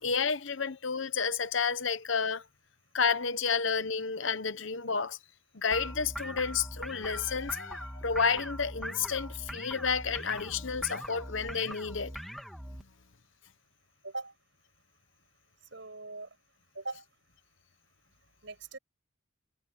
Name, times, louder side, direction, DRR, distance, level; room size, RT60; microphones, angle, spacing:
voice 1, 0.0-2.4 2.9-5.2 5.5-12.1, left 5 dB, 65° left, 1.0 m, -31 dB
sound 1, 5.7-12.8, equal, ahead, 2.6 m, -41 dB
voice 2, 15.7-16.3 16.7-17.1 18.4-18.8, right 3 dB, 60° right, 7.5 m, -40 dB
head